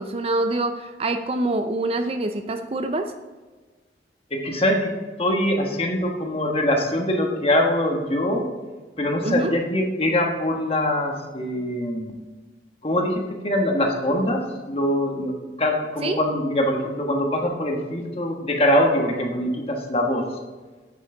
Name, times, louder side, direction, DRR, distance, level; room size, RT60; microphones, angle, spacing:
voice 1, 0.0-3.1 9.2-9.6 16.0-16.2, right 2 dB, 35° right, 8 dB, 0.4 m, -25 dB
voice 2, 4.3-4.9 5.2-8.5 9.0-12.1 12.8-14.4 14.7-20.3, left 1 dB, 35° left, 1 dB, 1.2 m, -23 dB
8.2 x 7.7 x 3.8 m, 1.3 s
head